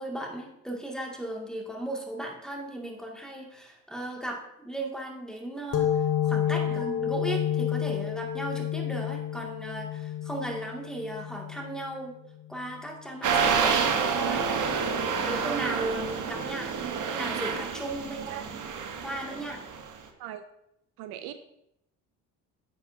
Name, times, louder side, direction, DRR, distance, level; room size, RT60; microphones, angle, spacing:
voice 1, 0.0-12.1 12.5-13.9 14.2-14.8 15.2-16.7 17.1-18.7 19.0-19.6, right 1 dB, ahead, 0 dB, 2.3 m, -36 dB
sound 1, 5.7-13.0, left 10 dB, 50° left, 1.0 m, -30 dB
sound 2, 13.2-19.9, right 6 dB, 50° right, 1.3 m, -28 dB
voice 2, 21.0-21.3, right 12 dB, 65° right, 10 dB, 0.7 m, -39 dB
10.0 x 7.2 x 2.8 m, 0.81 s
hypercardioid pair, 60°, 40 cm